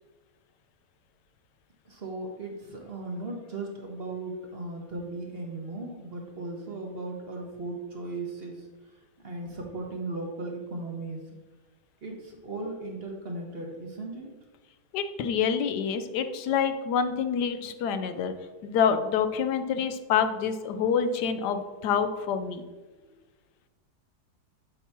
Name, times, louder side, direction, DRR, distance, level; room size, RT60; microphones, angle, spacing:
voice 1, 1.9-8.7 9.2-11.2 12.0-14.3, right 2 dB, 40° right, 1 dB, 1.1 m, -37 dB
voice 2, 14.9-18.3 18.6-22.6, left 7 dB, 90° left, 9 dB, 1.2 m, -27 dB
8.0 x 3.0 x 5.8 m, 1.2 s
omnidirectional pair, 1.7 m